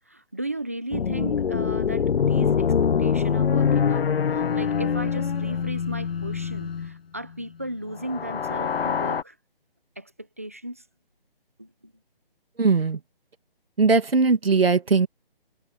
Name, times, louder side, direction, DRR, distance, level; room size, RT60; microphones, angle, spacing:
voice 1, 0.1-9.4 10.0-10.8 11.6-11.9, right 1 dB, 15° right, 0.8 m, -35 dB
sound 1, 0.9-6.9 8.0-9.2, left 7 dB, 85° left, 0.7 m, -24 dB
voice 2, 12.6-13.0 13.8-15.1, right 4 dB, 85° right, 2.3 m, -19 dB
hypercardioid pair, 180°, 29 cm